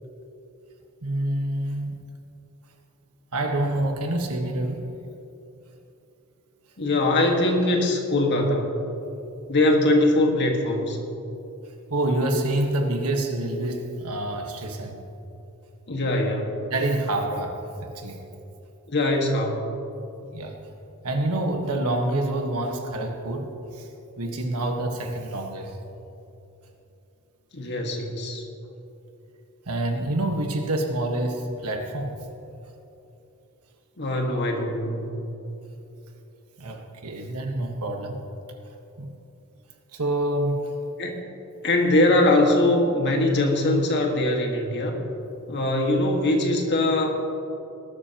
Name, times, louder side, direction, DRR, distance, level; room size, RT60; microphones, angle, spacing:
voice 1, 1.0-2.0 3.3-4.9 11.9-15.0 16.7-18.2 20.3-20.6 21.0-23.9 24.2-25.8 29.6-32.2 36.6-38.2 39.0-39.1 39.9-40.7, right 1 dB, 75° right, 3 dB, 1.5 m, -27 dB
voice 2, 6.8-8.8 9.5-11.0 15.9-16.6 18.9-19.7 27.5-28.5 34.0-35.2 41.0-41.2 41.6-45.0 45.5-47.2, left 1 dB, 50° left, 1 dB, 1.7 m, -22 dB
19.5 x 12.0 x 3.0 m, 2.9 s
head